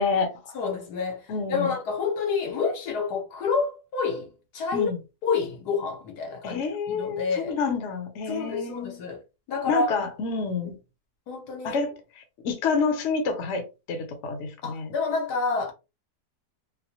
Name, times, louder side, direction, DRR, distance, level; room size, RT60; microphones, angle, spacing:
voice 1, 0.0-0.6 1.3-1.7 4.7-5.0 6.4-8.9 9.7-10.7 11.6-14.9, left 4 dB, 55° left, 1.0 m, -28 dB
voice 2, 0.5-4.9 5.2-7.6 8.3-9.2 9.5-9.9 10.6-10.7 11.3-11.8 14.6-15.7, left 4 dB, 75° left, 1.4 m, -28 dB
4.0 x 2.1 x 2.9 m
omnidirectional pair, 1.7 m